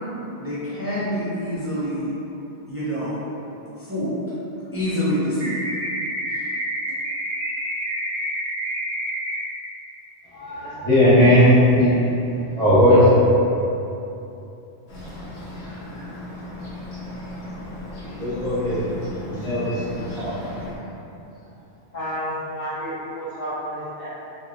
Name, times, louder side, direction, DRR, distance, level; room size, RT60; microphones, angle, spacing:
voice 1, 0.4-2.1 2.6-3.2 3.8-4.2 4.7-5.5 6.3-6.4, equal, 15° right, -12 dB, 0.6 m, -26 dB
sound 1, 5.4-9.4, right 1 dB, 70° right, 0.7 m, -28 dB
voice 2, 10.2-12.0 12.5-13.1 18.2-19.0 19.3-20.3, equal, 5° left, -13 dB, 1.0 m, -17 dB
Bird, 14.9-20.8, left 1 dB, 75° left, 1.0 m, -36 dB
voice 3, 21.9-24.1, equal, 55° left, -11 dB, 0.6 m, -31 dB
2.9 x 2.7 x 2.7 m, 2.9 s
omnidirectional pair, 1.1 m